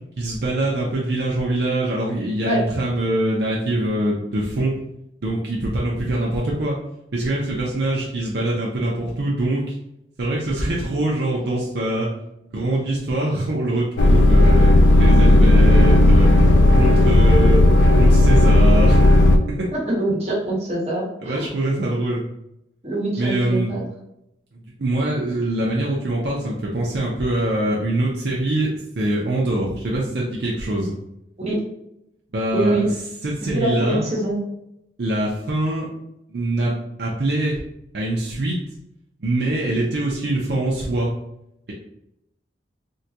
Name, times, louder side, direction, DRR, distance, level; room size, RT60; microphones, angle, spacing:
voice 1, 0.2-4.8 5.2-6.8 7.1-9.8 10.2-12.1 12.5-14.7 15.0-16.3 16.8-17.6 18.0-19.1 19.5-19.7 21.2-22.2 23.2-23.7 24.8-30.9 32.3-32.9 33.2-34.0 35.0-35.9 36.3-36.7 37.0-37.6 37.9-38.6 39.2-41.1, right 1 dB, 65° right, -4 dB, 0.5 m, -23 dB
sound 1, 14.0-19.4, left 1 dB, 85° left, 0.4 m, -13 dB
voice 2, 19.7-21.5 22.8-23.8 31.5-31.6 32.5-32.9 33.4-34.4, right 1 dB, 35° right, -5 dB, 1.1 m, -24 dB
3.7 x 2.2 x 2.8 m, 0.83 s
head